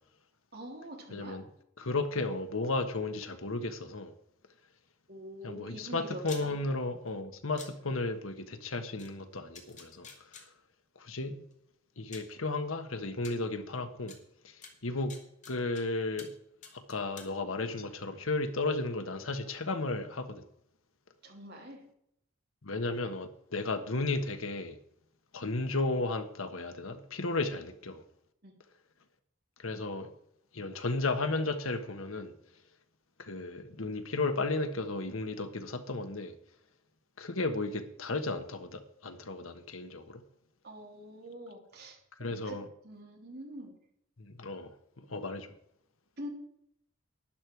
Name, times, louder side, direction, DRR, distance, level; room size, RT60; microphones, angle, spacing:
voice 1, 0.5-1.4 5.1-6.5 21.2-21.8 27.4-27.7 28.4-28.5 40.6-42.6 42.8-43.7 46.2-46.3, equal, 55° right, 3.3 m, -45 dB
voice 2, 1.1-1.4 1.8-4.1 5.4-10.1 11.0-11.4 12.0-14.1 14.8-15.1 15.5-16.3 16.9-20.4 22.6-24.8 25.3-28.0 29.6-30.1 30.5-32.3 33.2-36.3 37.2-40.2 42.2-42.6 44.2-44.7 45.1-45.5, left 2 dB, 85° left, 1.4 m, -34 dB
sound 1, 6.2-6.4 7.6-7.7 9.0-9.1 9.5-10.4 11.5-11.6 12.1-12.3 13.2-13.3 14.1-14.2 14.6-15.8 16.2-16.4 16.6-17.3, left 5 dB, 40° left, 2.3 m, -48 dB
12.0 x 11.0 x 4.7 m
head